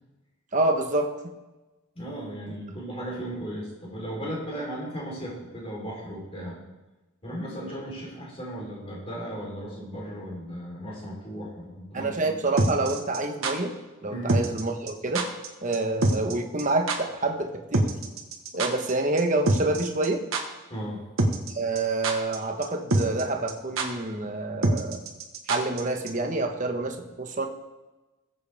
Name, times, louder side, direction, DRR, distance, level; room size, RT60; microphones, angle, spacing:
voice 1, 0.5-1.1 11.9-13.7 14.0-15.3 15.6-17.9 18.5-20.2 21.5-25.0 25.5-27.5, right 2 dB, 35° right, 4 dB, 1.2 m, -27 dB
voice 2, 2.0-6.6 7.2-12.3 14.1-14.4 20.7-21.0, equal, 30° left, -3 dB, 3.9 m, -36 dB
sound 1, 12.6-13.5 14.3-14.6 14.9-15.0 15.2-15.5 15.7-16.3 16.6-16.7 16.9-17.0 17.7-18.9 19.2-19.3 19.5-20.1 20.3-20.4 21.2-21.5 21.8-22.4 22.6-22.7 22.9-23.2 23.5-23.6 23.8-23.9 24.6-25.8 26.1-26.2, right 2 dB, 75° right, 1.4 m, -24 dB
19.5 x 7.8 x 3.6 m, 1.1 s
head